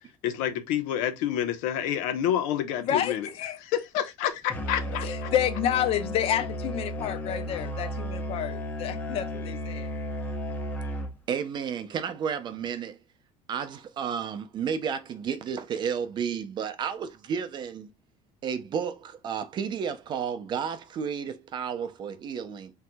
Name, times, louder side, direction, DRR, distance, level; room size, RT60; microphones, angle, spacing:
voice 1, 0.2-3.3 3.7-5.3, left 10 dB, 80° left, 0.9 m, -28 dB
voice 2, 2.8-3.6 5.0-9.9, left 10 dB, 45° left, 0.7 m, -29 dB
Musical instrument, 4.5-11.3, equal, 10° left, 0.8 m, -34 dB
voice 3, 11.3-13.0 13.5-17.9 18.4-22.7, right 7 dB, 35° right, 0.6 m, -32 dB
4.4 x 3.8 x 2.2 m
cardioid pair, 165°, 14 cm